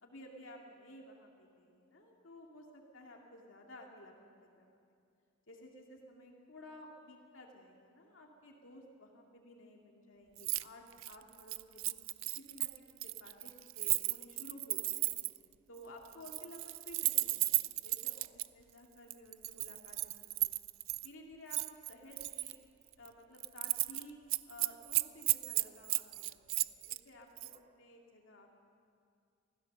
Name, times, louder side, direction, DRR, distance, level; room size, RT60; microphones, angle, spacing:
voice 1, 0.0-4.7 5.5-12.0 12.4-15.3 15.7-20.6 21.0-22.6 23.0-24.2 24.5-28.5, left 1 dB, 85° left, 0 dB, 2.3 m, -55 dB
Keys jangling, 10.4-10.6 10.9-15.4 16.1-18.5 19.1-21.1 21.5-22.6 22.9-23.1 23.4-24.0 24.3-27.0 27.4-27.6, right 18 dB, 85° right, 0.4 m, -34 dB
24.5 x 16.0 x 6.7 m, 2.4 s
head